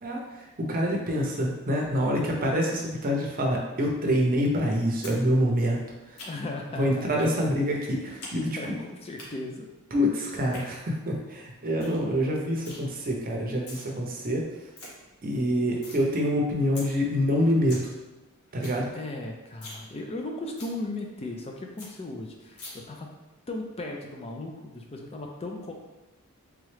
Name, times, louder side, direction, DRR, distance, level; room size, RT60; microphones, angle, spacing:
voice 1, 0.0-5.8 6.1-6.2 6.8-8.7 9.9-14.4 15.2-17.9 18.5-18.9, equal, 40° right, -1 dB, 0.6 m, -26 dB
sound 1, 5.0-5.2 5.5-6.6 7.2-7.3 7.7-8.4 8.6-9.3 10.3-10.6 11.1-11.2 11.5-11.6 11.8-12.0 12.3-12.8 13.4-13.8 14.3-14.4 14.5-14.9 15.3-16.0 16.4-16.5 16.8-16.9 17.3-17.4 17.5-17.9 18.2-18.3 18.5-18.8 19.1-19.2 19.5-19.8 20.1-20.2 20.6-20.7 21.1-21.2 21.5-21.6 21.8-21.9 22.6-22.7, left 2 dB, 80° left, 1.0 m, -43 dB
voice 2, 6.3-7.3 7.7-8.0 8.6-9.7 18.9-23.1 23.5-25.7, left 2 dB, 25° left, 1 dB, 0.4 m, -37 dB
3.5 x 3.1 x 3.2 m, 1.1 s
head